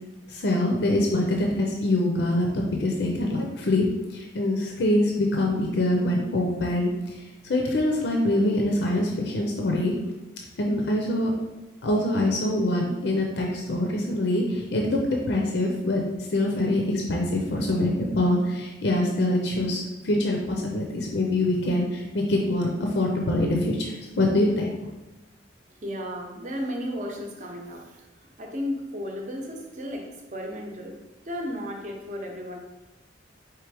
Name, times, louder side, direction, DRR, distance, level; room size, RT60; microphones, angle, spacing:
voice 1, 0.3-3.8 4.1-9.9 10.6-11.3 11.8-16.0 16.3-24.7, left 1 dB, 70° left, 0 dB, 0.5 m, -24 dB
voice 2, 25.8-28.0 28.4-31.0 31.2-32.6, equal, 40° right, 1 dB, 0.7 m, -34 dB
4.6 x 3.3 x 3.4 m, 1.1 s
head